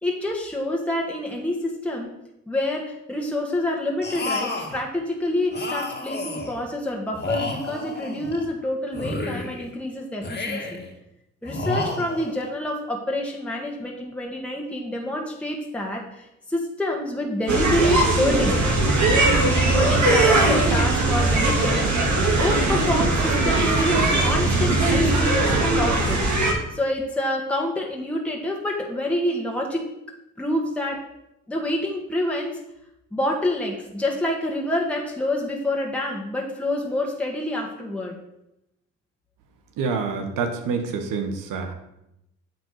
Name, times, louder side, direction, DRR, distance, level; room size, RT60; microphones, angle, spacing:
voice 1, 0.0-2.1 2.5-10.8 11.4-18.6 19.7-21.9 22.4-25.4 25.7-26.2 26.7-29.9 30.4-31.0 31.5-32.6 33.1-38.2, left 1 dB, 5° left, -1 dB, 1.6 m, -27 dB
sound 1, 4.0-4.8 5.5-6.6 7.1-8.5 8.9-9.7 10.2-10.9 11.5-12.5, left 2 dB, 30° left, 1.9 m, -31 dB
sound 2, 17.5-26.5, right 2 dB, 60° right, 2.8 m, -20 dB
voice 2, 39.8-41.7, right 5 dB, 80° right, 6 dB, 1.2 m, -27 dB
8.7 x 4.1 x 6.5 m, 0.85 s
supercardioid pair, 65°, 32 cm